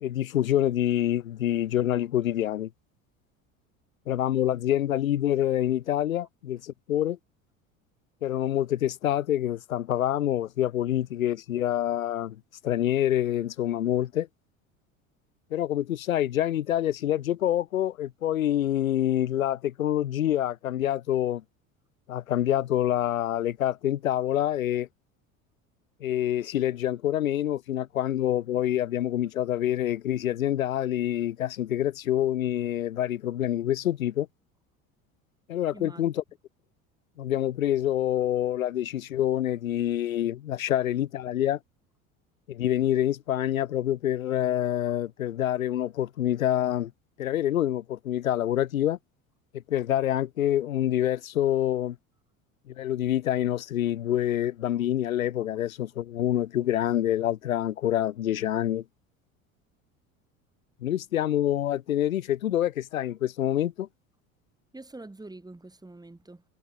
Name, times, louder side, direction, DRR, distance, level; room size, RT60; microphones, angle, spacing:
voice 1, 0.0-2.7 4.1-7.2 8.2-12.4 12.6-14.3 15.5-21.4 22.1-24.9 26.0-34.3 35.5-36.1 37.2-41.6 42.5-46.9 47.2-49.0 49.7-52.0 52.7-58.8 60.8-63.9, left 12 dB, 90° left, 0.6 m, -26 dB
voice 2, 35.7-36.1 64.7-66.4, right 2 dB, 10° right, 3.8 m, -45 dB
hypercardioid pair, 70°, 40 cm